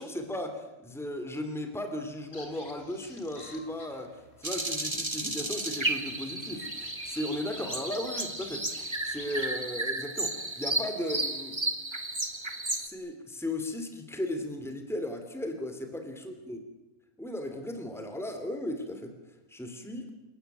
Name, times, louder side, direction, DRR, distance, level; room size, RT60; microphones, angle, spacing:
voice 1, 0.0-4.1 4.4-11.5 12.7-16.6 17.2-19.1 19.5-20.1, left 1 dB, ahead, 6 dB, 2.9 m, -36 dB
sound 1, 2.3-9.5, left 1 dB, 45° left, 4.1 m, -48 dB
sound 2, 4.4-12.9, right 2 dB, 20° right, 1.9 m, -33 dB
29.0 x 18.0 x 9.2 m, 1.0 s
omnidirectional pair, 1.5 m